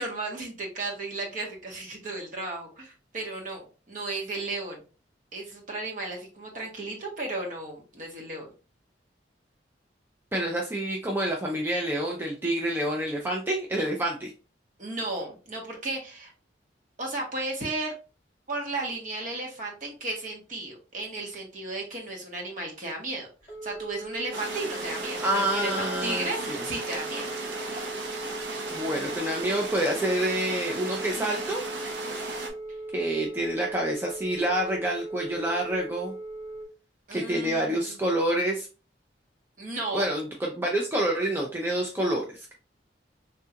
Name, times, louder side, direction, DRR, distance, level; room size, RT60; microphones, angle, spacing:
voice 1, 0.0-4.8 5.3-8.5 14.8-16.3 17.0-17.9 18.5-23.3 23.6-27.3 37.1-38.0 39.6-40.1, right 2 dB, 45° right, 0 dB, 1.0 m, -34 dB
voice 2, 10.3-14.3 25.2-26.6 28.7-31.6 32.9-36.1 37.1-38.7 39.9-42.5, right 1 dB, 10° right, -1 dB, 0.4 m, -28 dB
Telephone, 23.4-36.6, right 2 dB, 20° left, 1.1 m, -39 dB
sound 1, 24.3-32.5, right 2 dB, 70° right, 0.7 m, -36 dB
3.5 x 2.3 x 2.7 m, 0.34 s
head